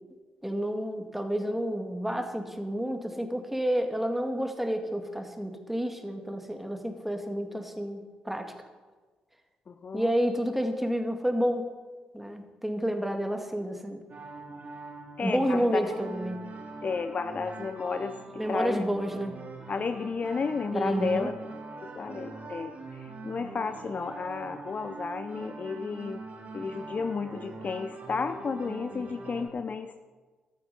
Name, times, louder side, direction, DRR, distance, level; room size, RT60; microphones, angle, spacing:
voice 1, 0.4-8.5 9.9-11.6 12.1-14.0 15.2-16.4 18.4-19.4 20.7-21.3, equal, 5° right, 5 dB, 2.2 m, -30 dB
voice 2, 9.7-10.1 15.2-15.9 16.8-18.8 19.7-21.4 21.8-26.2 26.5-30.0, left 4 dB, 40° left, 10 dB, 0.6 m, -32 dB
sound 1, 14.1-29.5, right 3 dB, 45° right, 3.9 m, -43 dB
13.5 x 12.0 x 5.4 m, 1.3 s
hypercardioid pair, 40°, 4 cm